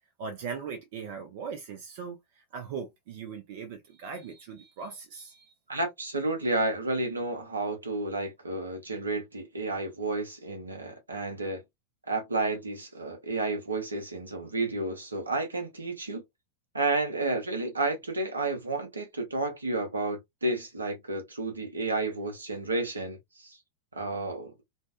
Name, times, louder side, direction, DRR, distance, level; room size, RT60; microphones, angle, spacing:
voice 1, 0.2-5.5, right 5 dB, 50° right, 0.5 m, -39 dB
voice 2, 5.7-11.6 12.1-16.2 16.7-23.2 23.4-23.6 24.0-24.5, right 2 dB, 75° right, 0.8 m, -31 dB
2.5 x 2.1 x 2.4 m
figure-of-eight pair, 90°, 0 cm